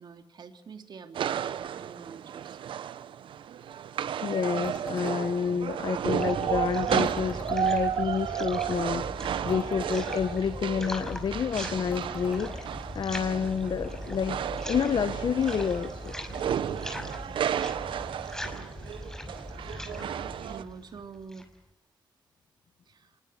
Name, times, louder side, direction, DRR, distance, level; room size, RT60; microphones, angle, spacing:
voice 1, 0.0-2.6 17.3-17.8 20.4-21.5 22.9-23.1, right 5 dB, 60° right, 6 dB, 3.2 m, -46 dB
sound 1, 1.1-20.6, right 9 dB, 80° right, 0.9 m, -33 dB
voice 2, 4.2-9.0 9.4-16.1, left 7 dB, 60° left, 12 dB, 1.2 m, -29 dB
sound 2, 4.6-5.2 7.1-7.6 9.5-10.0 11.9-12.4, left 3 dB, 25° left, 1.8 m, -45 dB
sound 3, 5.6-21.6, left 1 dB, 5° left, 5.9 m, -40 dB
26.0 x 22.0 x 8.1 m, 0.80 s
cardioid pair, 75°, 8 cm